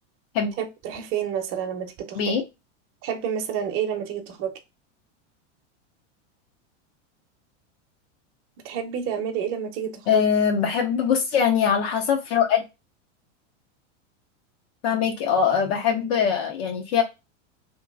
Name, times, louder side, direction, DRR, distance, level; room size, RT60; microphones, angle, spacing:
voice 1, 0.6-2.4 3.0-4.5 8.6-10.3, right 8 dB, 35° right, 0.7 m, -29 dB
voice 2, 10.1-12.6 14.8-17.0, left 7 dB, 55° left, 0.7 m, -22 dB
3.0 x 3.0 x 2.3 m
supercardioid pair, 145°, 37 cm